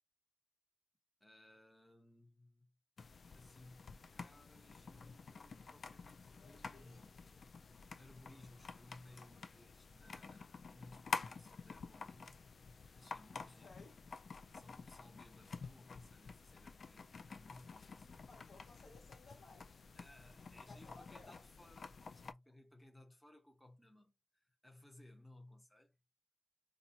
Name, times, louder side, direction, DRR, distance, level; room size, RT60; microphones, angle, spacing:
voice 1, 1.2-2.7 3.2-7.2 8.0-12.4 12.9-13.9 14.5-18.3 19.9-26.0, left 1 dB, 10° left, 0.9 m, -62 dB
sound 1, 3.0-22.3, left 4 dB, 60° left, 0.3 m, -50 dB
voice 2, 6.3-7.4 13.3-13.9 18.3-19.8 20.7-21.3, left 3 dB, 75° left, 1.3 m, -61 dB
3.0 x 2.4 x 2.7 m
cardioid pair, 55°, 0 cm